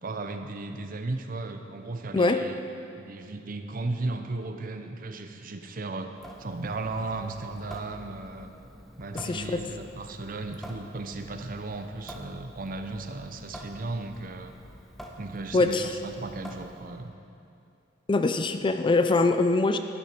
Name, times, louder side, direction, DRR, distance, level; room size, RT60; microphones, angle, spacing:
voice 1, 0.0-2.6 3.0-6.1 6.4-8.5 9.0-14.5 15.2-17.1, right 2 dB, 50° right, 6 dB, 0.7 m, -35 dB
voice 2, 2.1-2.4 9.1-9.6 15.5-15.9 18.1-19.8, left 3 dB, 25° left, 8 dB, 0.4 m, -23 dB
Water tap faucet / Sink (filling or washing) / Drip, 6.2-17.1, equal, ahead, 0.9 m, -47 dB
11.5 x 11.5 x 4.5 m, 2.6 s
head